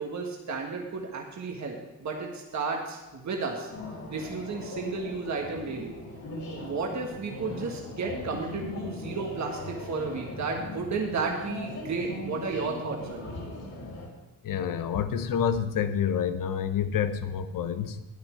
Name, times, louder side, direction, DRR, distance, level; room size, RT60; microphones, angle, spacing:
voice 1, 0.0-3.7 4.1-5.9 6.5-13.3, right 4 dB, 55° right, 1 dB, 1.7 m, -33 dB
sound 1, 3.7-14.1, left 2 dB, 60° left, 4.1 m, -39 dB
voice 2, 14.4-18.0, left 8 dB, 80° left, 10 dB, 0.9 m, -28 dB
12.5 x 8.9 x 4.6 m, 1.0 s
cardioid pair, 65°, 33 cm